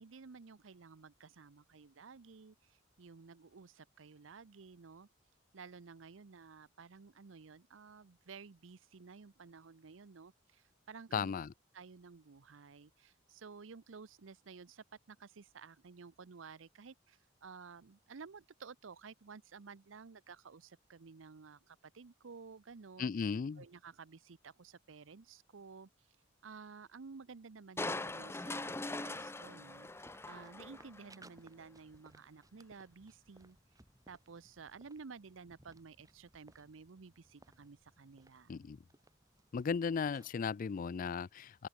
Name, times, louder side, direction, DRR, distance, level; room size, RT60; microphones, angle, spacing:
voice 1, 0.0-5.1 5.5-11.3 11.7-23.1 23.6-25.9 26.4-33.6 34.1-38.6, right 5 dB, 85° right, 0.7 m, -53 dB
voice 2, 11.1-11.5 23.0-23.6 38.5-38.8 39.5-41.7, left 5 dB, 45° left, 0.4 m, -36 dB
Crushing, 27.8-31.1 31.6-31.7, left 2 dB, 15° left, 0.7 m, -41 dB
sound 1, 27.8-40.5, right 2 dB, 20° right, 2.4 m, -65 dB
open air
head